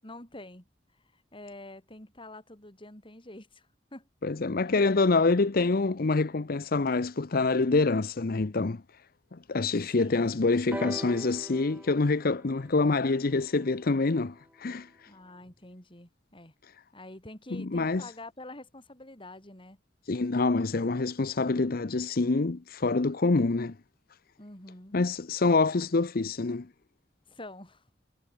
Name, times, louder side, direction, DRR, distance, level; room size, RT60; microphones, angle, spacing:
voice 1, 0.0-0.7 1.1-4.1 9.9-10.4 15.1-16.5 16.9-19.8 24.4-24.9 27.3-27.8, left 1 dB, 30° left, 5.3 m, -47 dB
voice 2, 4.2-9.0 9.3-15.1 17.5-18.1 20.1-23.8 24.9-26.7, left 3 dB, 55° left, 0.7 m, -26 dB
sound 1, 10.7-14.5 15.5-15.6, right 1 dB, 10° right, 4.7 m, -42 dB
head